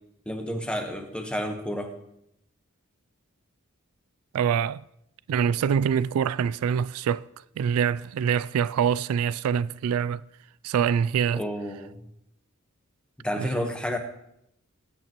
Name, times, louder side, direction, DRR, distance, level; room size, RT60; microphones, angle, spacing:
voice 1, 0.3-1.9 11.3-12.0 13.2-14.0, equal, 5° left, 1.1 m, -30 dB
voice 2, 4.3-4.8 5.3-7.2 7.6-10.2 10.6-11.4 13.4-13.5, right 8 dB, 85° right, 0.3 m, -25 dB
20.5 x 8.6 x 3.0 m
head